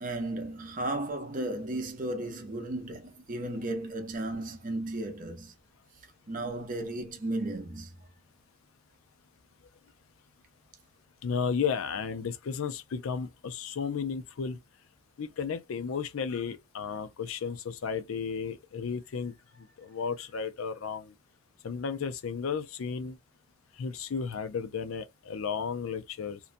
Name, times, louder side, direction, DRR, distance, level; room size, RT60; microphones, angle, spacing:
voice 1, 0.0-5.5 6.3-7.9, right 1 dB, 40° right, 0.6 m, -34 dB
voice 2, 11.2-14.6 15.2-19.3 19.8-21.1 21.6-23.2 23.8-26.4, left 6 dB, 80° left, 0.4 m, -33 dB
2.6 x 2.2 x 2.5 m
head